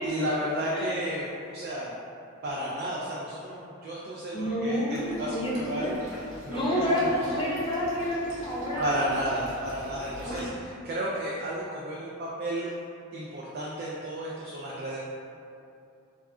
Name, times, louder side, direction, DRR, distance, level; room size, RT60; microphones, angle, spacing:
voice 1, 0.0-2.0 2.4-7.3 8.8-12.7 13.1-15.0, right 1 dB, 50° right, -5 dB, 0.3 m, -33 dB
voice 2, 4.3-5.9 6.5-9.2 10.1-10.4, equal, 25° left, -6 dB, 0.5 m, -29 dB
Water / Liquid, 4.9-10.4, equal, 85° right, 0.8 m, -44 dB
2.3 x 2.3 x 3.5 m, 2.6 s
head